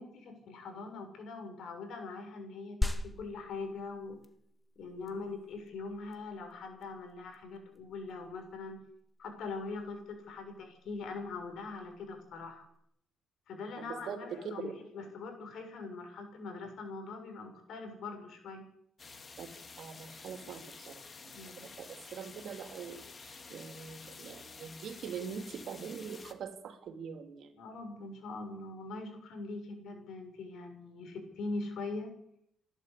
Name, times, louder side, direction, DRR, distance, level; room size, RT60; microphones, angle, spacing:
voice 1, 0.0-4.2 4.7-8.8 9.2-12.6 13.5-14.7 14.9-18.6 21.3-21.7 27.5-32.1, left 3 dB, 70° left, 5 dB, 6.8 m, -42 dB
sound 1, 2.8-12.8, left 1 dB, 10° left, 1.9 m, -42 dB
voice 2, 13.8-14.7 19.4-19.5 19.8-27.5, right 7 dB, 70° right, 7 dB, 3.2 m, -43 dB
sound 2, 19.0-26.3, left 4 dB, 35° left, 2.3 m, -50 dB
29.0 x 11.5 x 8.6 m, 0.74 s
cardioid pair, 90°, 0 cm